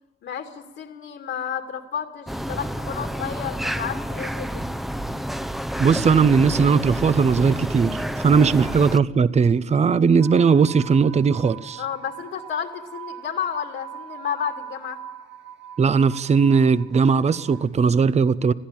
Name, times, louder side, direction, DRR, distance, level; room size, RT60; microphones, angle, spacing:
voice 1, 0.2-4.6 11.8-15.0, left 8 dB, 75° left, 3 dB, 2.4 m, -31 dB
sound 1, 2.3-9.0, equal, ahead, 0.8 m, -29 dB
voice 2, 5.8-11.8 15.8-18.5, right 5 dB, 35° right, 15 dB, 0.7 m, -18 dB
sound 2, 10.2-17.7, right 9 dB, 60° right, 1.9 m, -41 dB
21.5 x 15.5 x 8.9 m, 1.2 s
cardioid pair, 90°, 20 cm